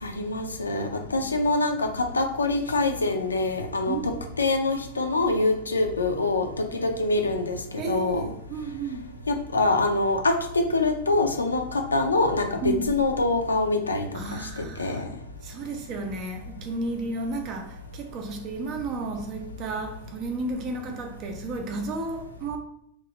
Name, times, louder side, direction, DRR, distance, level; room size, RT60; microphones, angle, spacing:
voice 1, 0.0-4.0 4.4-8.3 9.3-14.1 14.8-15.0, left 2 dB, 75° left, 0.3 m, -25 dB
voice 2, 3.9-4.2 7.8-9.1 12.6-13.0 14.1-15.1 15.4-22.6, right 2 dB, 35° right, 0.4 m, -33 dB
2.9 x 2.0 x 2.7 m
figure-of-eight pair, 90°, 0 cm